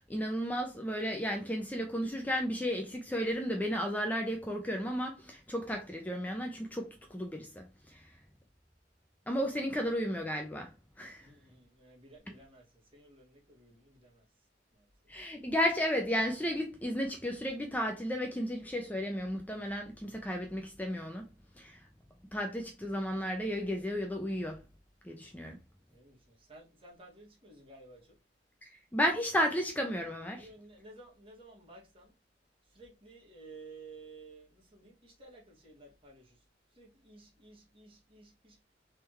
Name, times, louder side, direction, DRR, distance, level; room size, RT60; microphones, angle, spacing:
voice 1, 0.1-8.0 9.3-10.7 11.0-11.2 15.1-21.2 21.6-21.8 22.3-24.6 25.0-25.6 28.6-30.5, equal, 10° left, 0.5 m, -33 dB
voice 2, 11.2-12.7 12.9-14.2 25.9-28.1 30.3-32.1 32.7-36.4 36.8-38.6, right 3 dB, 30° right, 1.9 m, -54 dB
3.6 x 3.3 x 4.4 m
head